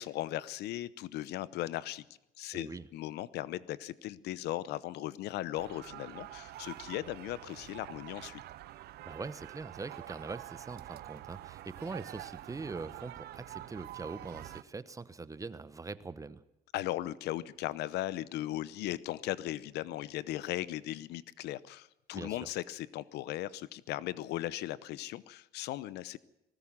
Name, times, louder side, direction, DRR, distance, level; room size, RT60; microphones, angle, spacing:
voice 1, 0.0-2.0 2.4-8.4 16.7-26.2, left 15 dB, 80° left, 19 dB, 0.8 m, -37 dB
voice 2, 2.5-2.9 9.1-16.4 22.1-22.5, right 4 dB, 20° right, 15 dB, 1.0 m, -42 dB
sound 1, 5.6-14.6, right 15 dB, 70° right, 0.8 m, -47 dB
19.5 x 17.5 x 7.5 m, 0.89 s
cardioid pair, 110°, 17 cm